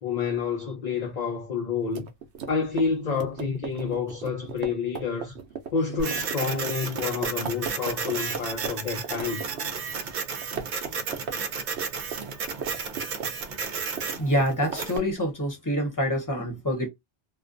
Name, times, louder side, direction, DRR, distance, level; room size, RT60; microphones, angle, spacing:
voice 1, 0.0-2.1 2.5-5.4 5.7-9.4, left 5 dB, 50° left, 0.5 m, -29 dB
sound 1, 1.9-8.7 9.0-10.2 10.4-11.4 11.6-13.5 13.8-15.2, right 6 dB, 85° right, 0.9 m, -36 dB
Printer, 6.0-15.0, right 5 dB, 55° right, 0.6 m, -33 dB
voice 2, 14.2-16.9, equal, 20° left, 0.9 m, -26 dB
2.4 x 2.2 x 2.5 m
omnidirectional pair, 1.1 m